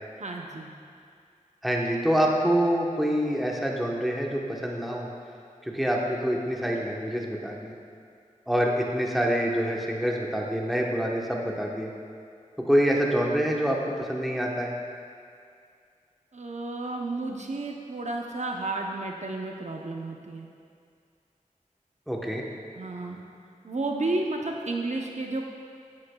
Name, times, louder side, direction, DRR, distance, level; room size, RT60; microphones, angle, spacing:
voice 1, 0.2-0.7 16.3-20.5 22.8-23.2 23.6-25.4, right 2 dB, 60° right, 1 dB, 0.7 m, -32 dB
voice 2, 1.6-5.1 5.6-7.7 8.5-11.9 12.7-14.8 22.1-22.4, equal, ahead, -2 dB, 1.0 m, -26 dB
9.6 x 9.5 x 2.3 m, 2.3 s
wide cardioid pair, 50°, 14 cm